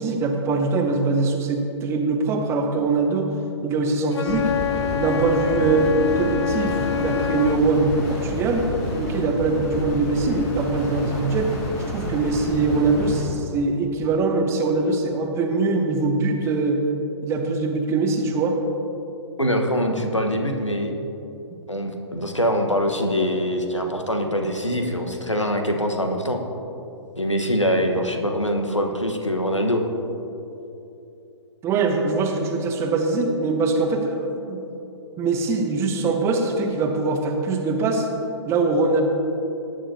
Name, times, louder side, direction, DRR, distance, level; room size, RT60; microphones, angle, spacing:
voice 1, 0.0-3.3 3.6-4.5 5.0-8.7 9.0-11.5 11.9-16.8 17.2-18.6 31.6-34.6 35.2-38.1 38.5-39.0, right 3 dB, 15° right, 4 dB, 0.9 m, -22 dB
Wind instrument woodwind instrument, 4.1-7.7, left 9 dB, 65° left, 0.4 m, -26 dB
sound 1, 4.3-13.2, left 1 dB, 35° left, 2.6 m, -30 dB
voice 2, 19.4-20.9 21.7-26.4 27.2-29.8, equal, 85° left, 4 dB, 1.3 m, -23 dB
18.0 x 9.0 x 2.8 m, 2.9 s
figure-of-eight pair, 120°, 15 cm